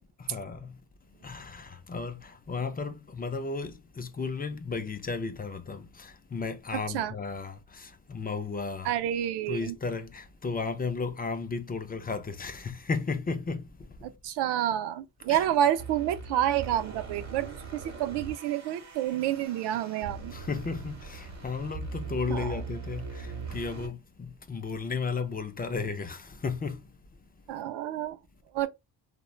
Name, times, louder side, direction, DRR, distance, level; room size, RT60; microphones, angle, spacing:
voice 1, 0.2-0.8 1.2-8.9 9.5-14.2 15.3-15.5 20.3-26.9, left 4 dB, 25° left, 0.4 m, -34 dB
voice 2, 6.7-7.1 8.8-9.8 14.0-20.3 22.3-22.6 27.5-28.2 28.5-28.7, right 11 dB, 85° right, 0.5 m, -29 dB
sound 1, 15.8-23.9, right 4 dB, 45° right, 1.0 m, -40 dB
3.0 x 2.1 x 2.3 m
cardioid pair, 105°, 39 cm